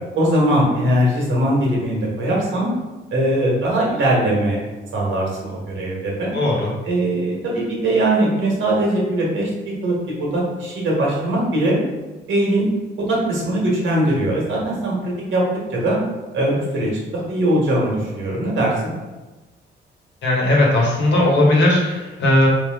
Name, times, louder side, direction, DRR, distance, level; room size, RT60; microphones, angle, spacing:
voice 1, 0.1-2.7 3.1-4.6 4.9-6.3 6.8-9.5 9.8-11.8 12.3-12.7 13.1-15.4 15.7-16.0 16.3-18.9, right 1 dB, 70° right, -4 dB, 1.3 m, -20 dB
voice 2, 6.3-6.7 20.2-22.5, left 1 dB, 65° left, -2 dB, 1.2 m, -17 dB
3.4 x 2.8 x 3.5 m, 1.2 s
cardioid pair, 90°, 20 cm